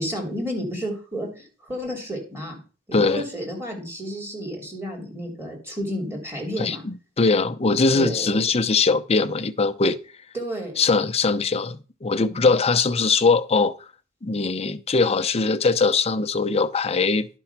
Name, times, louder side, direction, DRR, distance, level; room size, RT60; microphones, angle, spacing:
voice 1, 0.0-2.6 2.9-6.8 7.9-8.4 10.3-10.8 12.3-12.5, equal, 15° right, 3.0 m, -31 dB
voice 2, 2.9-3.2 6.6-10.0 10.8-13.8 14.2-17.3, left 4 dB, 30° left, 0.6 m, -21 dB
10.5 x 4.5 x 5.9 m
head